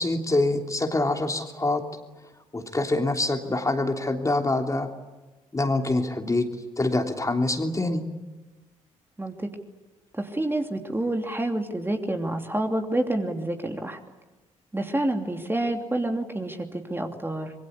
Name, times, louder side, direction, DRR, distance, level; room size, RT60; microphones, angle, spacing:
voice 1, 0.0-1.8 2.5-4.9 5.5-6.4 6.8-8.0, left 2 dB, 20° left, 4 dB, 3.1 m, -25 dB
voice 2, 9.2-9.5 10.1-14.0 14.7-17.5, right 1 dB, 15° right, 4 dB, 3.0 m, -28 dB
25.5 x 23.0 x 8.4 m, 1.1 s
figure-of-eight pair, 45°, 16 cm